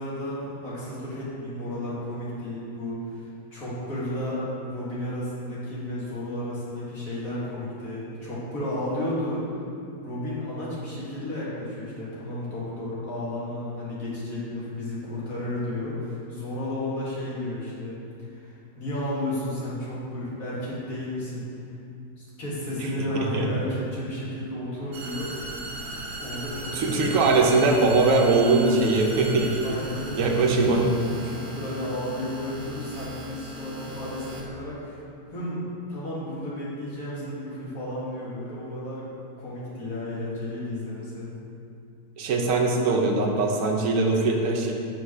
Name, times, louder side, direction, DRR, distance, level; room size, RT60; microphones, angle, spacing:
voice 1, 0.0-9.4 10.0-21.5 22.2-25.3 26.2-27.1 29.6-30.8 31.2-35.0 35.3-35.6 35.9-39.1 39.4-41.3, left 1 dB, 55° left, -8 dB, 2.2 m, -33 dB
sound 1, 24.9-34.5, right 2 dB, 90° right, 0.4 m, -38 dB
voice 2, 26.7-29.6 30.1-30.9 42.2-44.7, right 3 dB, 60° right, 1 dB, 1.0 m, -21 dB
6.3 x 4.1 x 5.5 m, 2.5 s
omnidirectional pair, 1.8 m